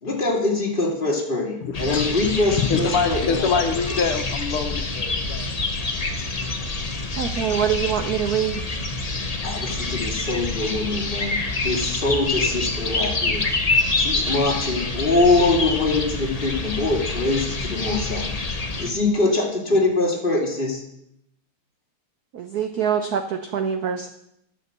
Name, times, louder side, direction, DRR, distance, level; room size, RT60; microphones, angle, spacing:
voice 1, 0.0-3.6 9.4-11.3 11.6-13.4 14.0-18.3 18.8-20.8, left 2 dB, 25° left, -1 dB, 2.6 m, -23 dB
voice 2, 1.6-2.1 2.6-5.6, left 5 dB, 80° left, 7 dB, 2.0 m, -25 dB
sound 1, 1.7-18.9, left 3 dB, 65° left, 0.3 m, -26 dB
voice 3, 7.2-8.6 22.3-24.1, right 8 dB, 70° right, 8 dB, 0.9 m, -24 dB
11.0 x 7.7 x 6.7 m, 0.77 s
omnidirectional pair, 2.4 m